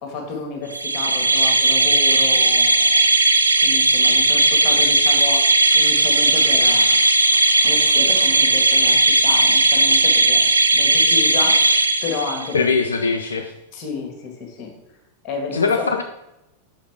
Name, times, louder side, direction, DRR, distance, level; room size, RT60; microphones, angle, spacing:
voice 1, 0.0-3.1 3.6-5.4 5.7-7.0 7.6-10.4 10.7-12.6 13.7-14.7 15.2-15.9, left 4 dB, 30° left, 2 dB, 1.8 m, -31 dB
sound 1, 0.7-12.6, right 2 dB, 80° right, 0.4 m, -16 dB
sound 2, 5.0-11.0, right 3 dB, 55° right, 1.5 m, -42 dB
voice 2, 12.5-13.5 15.5-16.0, left 4 dB, 75° left, 5 dB, 0.4 m, -21 dB
5.5 x 5.0 x 4.7 m, 0.90 s
figure-of-eight pair, 90°, 0 cm